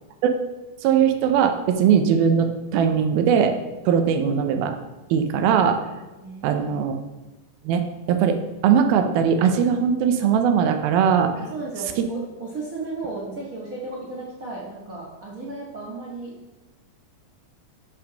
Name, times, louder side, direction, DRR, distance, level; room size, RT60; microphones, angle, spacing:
voice 1, 0.8-3.5 3.9-4.7 5.1-5.8 6.4-7.0 7.7-7.8 8.1-11.3 12.0-12.1, right 7 dB, 90° right, 7 dB, 2.6 m, -20 dB
voice 2, 6.2-6.9 11.4-16.3, right 3 dB, 50° right, -5 dB, 1.0 m, -34 dB
7.2 x 5.7 x 6.3 m, 1.1 s
omnidirectional pair, 4.2 m